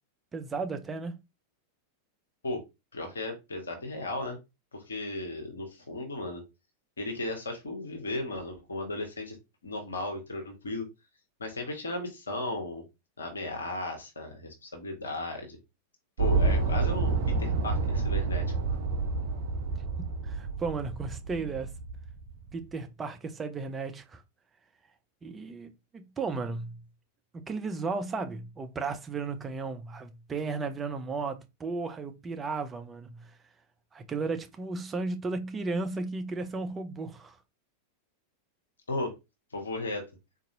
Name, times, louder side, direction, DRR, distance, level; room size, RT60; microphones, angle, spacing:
voice 1, 0.3-1.2 20.0-21.7 22.5-24.2 25.2-26.8 27.3-33.3 33.9-37.4, right 4 dB, 20° right, 0.5 m, -35 dB
voice 2, 2.9-4.4 4.7-6.4 7.0-9.4 9.6-10.9 11.4-12.8 13.2-15.6 16.2-18.8 38.9-39.2 39.5-40.1, left 2 dB, 70° left, 0.9 m, -35 dB
sound 1, 16.2-22.5, right 4 dB, 50° right, 0.7 m, -29 dB
4.0 x 2.6 x 2.6 m
figure-of-eight pair, 90°, 0 cm